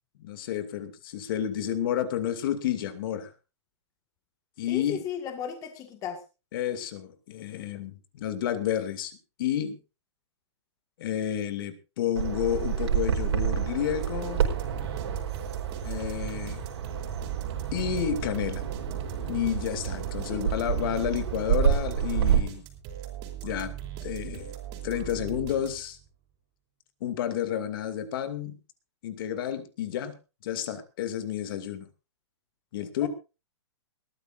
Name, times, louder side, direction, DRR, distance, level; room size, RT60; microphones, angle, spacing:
voice 1, 0.2-3.3 4.6-5.0 6.5-9.8 11.0-14.5 15.8-16.6 17.7-18.6 19.3-22.6 23.4-23.7 24.0-24.5 24.8-26.0 27.0-28.5 29.0-30.1 30.4-31.9 32.7-33.1, left 10 dB, 50° left, 9 dB, 2.5 m, -30 dB
voice 2, 4.7-6.2 20.3-20.4 33.0-33.1, left 9 dB, 20° left, 6 dB, 1.7 m, -35 dB
Bird vocalization bird call bird song, 12.2-22.4, right 8 dB, 65° right, 4.7 m, -29 dB
sound 1, 13.8-26.1, right 11 dB, 30° right, 4.2 m, -39 dB
21.0 x 14.5 x 2.6 m, 0.30 s
hypercardioid pair, 150°, 15 cm